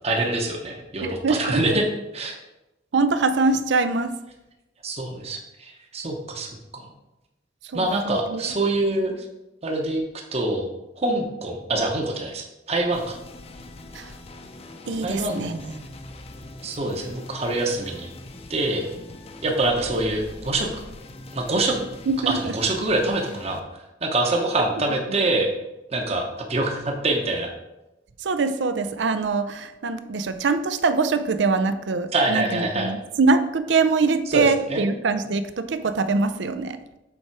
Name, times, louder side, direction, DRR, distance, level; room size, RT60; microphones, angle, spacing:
voice 1, 0.0-1.9 2.1-2.3 4.8-6.9 7.7-9.3 9.6-10.0 10.3-10.7 11.0-13.2 15.0-15.4 16.6-18.1 18.5-18.9 19.4-20.7 21.3-21.8 22.3-23.6 24.0-25.5 25.9-27.5 32.1-32.9 34.3-34.4 34.7-34.8, right 2 dB, 35° right, 2 dB, 0.9 m, -25 dB
voice 2, 1.0-1.8 2.9-4.2 7.6-8.4 13.9-14.1 14.9-15.8 22.1-22.5 28.2-36.8, right 4 dB, 85° right, 11 dB, 0.5 m, -23 dB
sound 1, 12.9-23.6, left 2 dB, 35° left, 0.6 m, -42 dB
7.0 x 4.8 x 4.6 m, 0.98 s
head